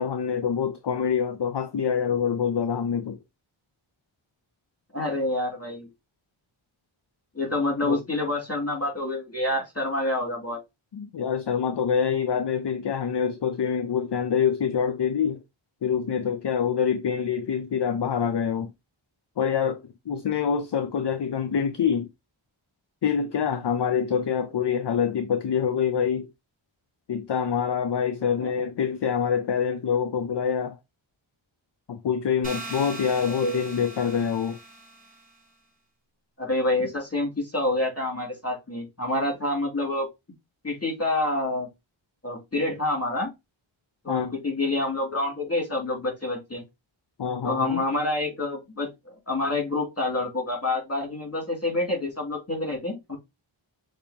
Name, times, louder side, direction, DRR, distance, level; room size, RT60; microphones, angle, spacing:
voice 1, 0.0-3.2 7.8-8.0 10.9-15.4 15.8-18.7 19.4-22.1 23.0-26.3 27.1-30.8 31.9-34.6 44.1-44.3 47.2-47.8, left 7 dB, 55° left, 0.6 m, -26 dB
voice 2, 4.9-5.9 7.3-10.6 28.4-28.5 33.3-33.6 36.4-40.1 40.6-41.7 42.2-43.3 44.0-46.6 47.4-48.9 49.3-53.2, left 2 dB, 30° left, 2.4 m, -27 dB
sound 1, 32.4-35.3, right 2 dB, 15° right, 3.1 m, -40 dB
6.8 x 2.8 x 2.8 m
wide cardioid pair, 50°, 49 cm